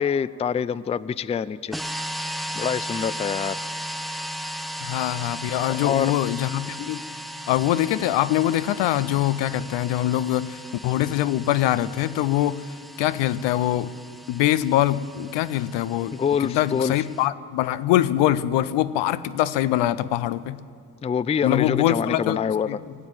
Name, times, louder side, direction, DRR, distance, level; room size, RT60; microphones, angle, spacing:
voice 1, 0.0-1.8 2.5-3.6 5.8-6.1 16.1-16.9 21.0-22.7, left 7 dB, 15° left, 17 dB, 0.3 m, -25 dB
sound 1, 1.7-17.3, equal, ahead, 0.8 m, -36 dB
voice 2, 4.8-7.0 7.5-12.7 13.0-13.9 14.3-20.6 21.4-22.4 22.7-22.8, left 13 dB, 75° left, 15 dB, 0.6 m, -23 dB
18.5 x 8.1 x 9.0 m, 2.2 s
hypercardioid pair, 50°, 43 cm